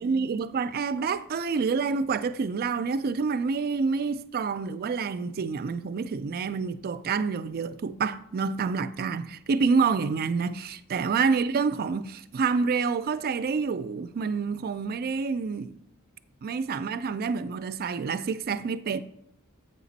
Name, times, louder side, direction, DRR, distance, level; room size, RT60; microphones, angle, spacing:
voice 1, 0.0-15.8 16.4-19.0, right 5 dB, 45° right, 0.4 m, -28 dB
7.9 x 5.1 x 4.0 m
head